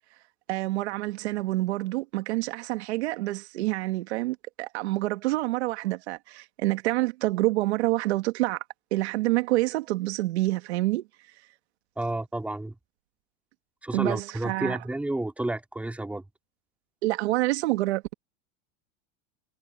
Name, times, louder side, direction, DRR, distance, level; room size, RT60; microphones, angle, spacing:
voice 1, 0.5-8.6 8.9-11.0 13.9-14.8 17.0-18.1, right 19 dB, 75° right, 2.0 m, -27 dB
voice 2, 12.0-12.8 13.8-16.2, right 2 dB, 5° right, 2.4 m, -31 dB
supercardioid pair, 155°, 33 cm